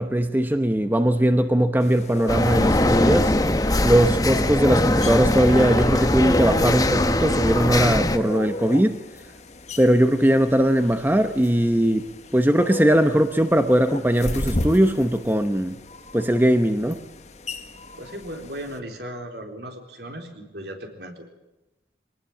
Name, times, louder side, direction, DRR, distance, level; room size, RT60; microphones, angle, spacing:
voice 1, 0.0-3.3 3.8-9.0 9.8-12.1 12.3-15.8 16.1-17.0, right 1 dB, 10° right, 8 dB, 0.9 m, -20 dB
sound 1, 1.8-18.8, left 1 dB, 40° left, 1.4 m, -36 dB
sound 2, 2.3-8.2, left 1 dB, 20° left, 1.0 m, -21 dB
voice 2, 18.0-21.2, equal, 65° right, 4 dB, 4.0 m, -36 dB
24.0 x 19.0 x 7.4 m, 1.0 s
head